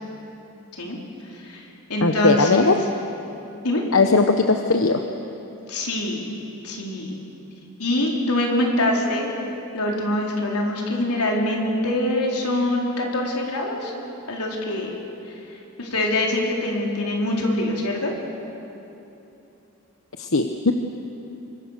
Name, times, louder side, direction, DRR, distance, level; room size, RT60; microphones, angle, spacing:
voice 1, 0.7-2.8 3.6-3.8 5.7-6.3 6.6-7.2 7.8-9.3 9.7-13.9 14.3-14.9 15.3-15.4 15.8-18.1, left 1 dB, 85° left, -1 dB, 4.4 m, -24 dB
voice 2, 2.0-2.8 3.9-5.0 20.2-20.7, left 3 dB, 60° left, 5 dB, 1.0 m, -18 dB
28.0 x 24.0 x 6.8 m, 2.9 s
head